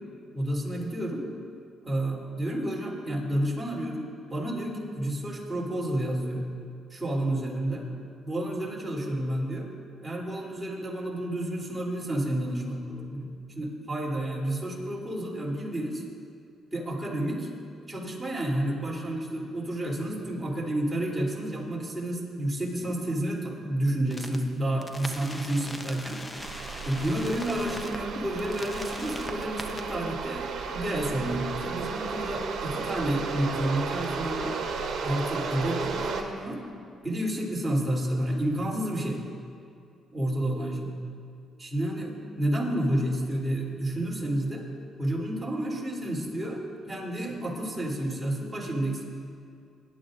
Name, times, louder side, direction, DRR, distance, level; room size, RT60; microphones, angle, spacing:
voice 1, 0.3-1.2 1.8-4.0 4.3-6.4 6.9-7.8 8.2-9.7 10.0-16.0 16.7-17.5 17.9-26.2 26.8-34.6 35.0-36.6 37.0-39.2 40.1-40.9 41.6-44.7 45.0-49.0, right 1 dB, 15° right, -4 dB, 3.3 m, -30 dB
sound 1, 24.1-24.4 24.8-28.0 28.4-29.8, left 1 dB, 20° left, 0.9 m, -40 dB
sound 2, 26.4-36.2, right 5 dB, 70° right, 1.2 m, -34 dB
20.5 x 11.0 x 2.6 m, 2.4 s
cardioid pair, 90°, 0 cm